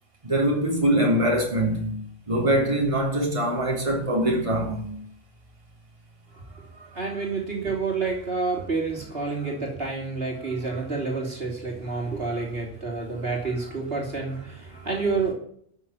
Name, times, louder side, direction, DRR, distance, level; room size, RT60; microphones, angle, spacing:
voice 1, 0.2-2.0 2.3-4.9, right 1 dB, 25° right, 3.3 m, -23 dB
voice 2, 6.5-15.3, right 4 dB, 50° right, 3.5 m, -29 dB
13.0 x 6.8 x 8.9 m
omnidirectional pair, 1.3 m